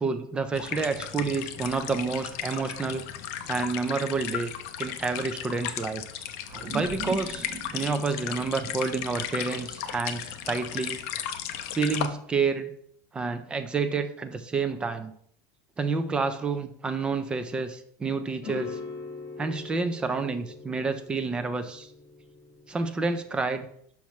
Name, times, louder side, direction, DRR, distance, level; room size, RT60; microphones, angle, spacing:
voice 1, 0.0-3.0 3.5-4.5 4.8-6.0 6.7-7.5 7.7-11.0 11.7-12.7 13.1-15.1 15.8-18.8 19.4-21.9 22.7-23.7, right 4 dB, 10° right, 8 dB, 0.3 m, -29 dB
sound 1, 0.5-12.1, left 10 dB, 55° left, 0.5 m, -35 dB
sound 2, 6.5-11.2, right 4 dB, 35° right, 1.0 m, -40 dB
sound 3, 18.4-23.6, left 4 dB, 35° left, 2.0 m, -42 dB
5.8 x 5.7 x 3.1 m, 0.66 s
supercardioid pair, 175°, 10 cm